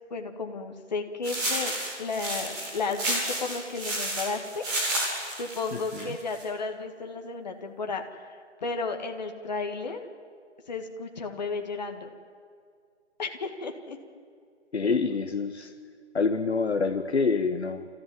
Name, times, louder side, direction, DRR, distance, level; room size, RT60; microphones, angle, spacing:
voice 1, 0.1-4.7 4.9-5.0 5.4-10.1 10.7-12.1 13.2-14.0 15.1-15.2, left 4 dB, 35° left, 4 dB, 2.0 m, -33 dB
sound 1, 1.2-6.4, right 1 dB, 10° right, 3.2 m, -31 dB
voice 2, 5.7-6.2 14.7-15.7 16.1-17.9, left 4 dB, 60° left, 8 dB, 1.4 m, -27 dB
30.0 x 14.5 x 9.4 m, 2.2 s
figure-of-eight pair, 165°, 36 cm